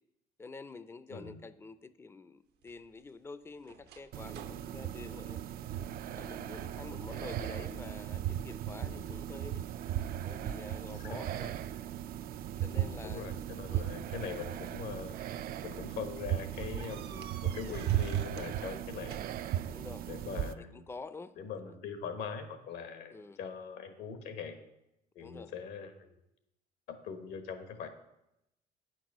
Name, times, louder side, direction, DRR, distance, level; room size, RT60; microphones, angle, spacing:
voice 1, 0.4-5.4 6.0-9.7 10.2-11.5 12.6-13.3 13.7-13.9 19.7-20.1 20.6-21.3 21.6-21.7 23.1-23.4 25.2-25.5, left 3 dB, 15° left, 14 dB, 0.5 m, -48 dB
voice 2, 1.1-1.4 8.8-9.1 10.9-11.2 12.7-15.2 15.6-19.2 20.1-20.8 21.4-24.6 25.1-26.1 26.9-27.9, left 6 dB, 80° left, 7 dB, 1.4 m, -42 dB
sound 1, 2.6-6.1 6.5-6.8 7.1-7.8 8.2-9.0 9.6-11.0 12.2-12.3 13.5-14.9 15.4-15.6 15.9-16.0 16.5-18.5 18.8-19.6, right 9 dB, 75° right, 0.8 m, -53 dB
sound 2, 4.1-20.5, right 11 dB, 60° right, 0.4 m, -37 dB
8.8 x 6.1 x 6.2 m, 0.87 s
cardioid pair, 110°, 17 cm